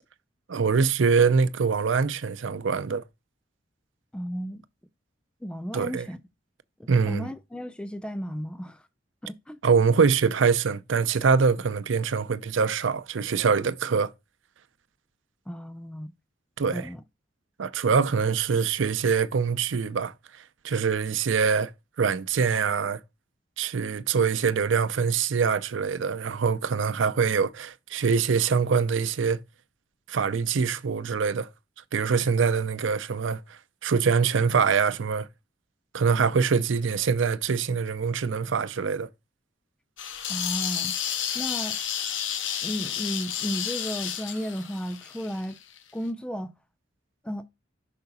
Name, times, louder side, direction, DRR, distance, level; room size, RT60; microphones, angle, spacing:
voice 1, 0.5-3.0 5.7-6.1 6.9-7.3 9.6-14.1 16.6-16.9 17.6-20.1 20.6-21.7 22.0-23.0 23.6-29.4 30.1-31.5 31.9-35.3 35.9-39.1, right 5 dB, 85° right, 0.5 m, -24 dB
voice 2, 4.1-4.6 5.4-6.2 6.8-8.8 9.2-9.6 15.5-16.1 16.7-17.0 40.3-41.0 41.3-41.8 42.6-45.6 45.9-46.5 47.2-47.4, equal, 5° left, 0.4 m, -34 dB
sound 1, 40.0-45.8, left 9 dB, 85° left, 0.8 m, -31 dB
5.8 x 4.7 x 4.0 m
head